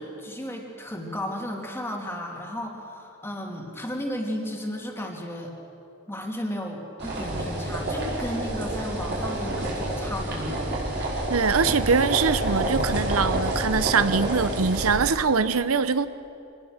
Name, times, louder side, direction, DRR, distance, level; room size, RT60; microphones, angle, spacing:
voice 1, 0.0-5.5 6.1-10.6, equal, 10° left, 0 dB, 2.7 m, -34 dB
sound 1, 7.0-15.0, right 1 dB, 55° right, 5.5 m, -28 dB
voice 2, 11.3-16.1, right 5 dB, 80° right, 14 dB, 0.8 m, -23 dB
25.5 x 19.5 x 6.6 m, 2.7 s
head